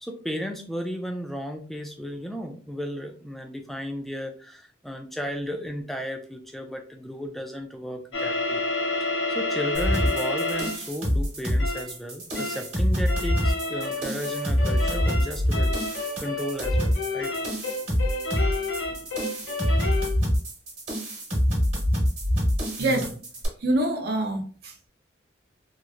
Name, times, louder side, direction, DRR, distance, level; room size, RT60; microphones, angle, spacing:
voice 1, 0.0-8.6 9.0-17.3, equal, ahead, 4 dB, 0.3 m, -34 dB
sound 1, 8.1-10.9 11.6-11.9 12.4-12.7 13.1-20.2, left 2 dB, 80° left, 0.8 m, -30 dB
sound 2, 9.7-23.5, equal, 35° right, 1.1 m, -26 dB
voice 2, 22.8-23.2 23.6-24.8, right 1 dB, 55° right, 3 dB, 0.6 m, -25 dB
3.0 x 2.4 x 2.4 m, 0.42 s
head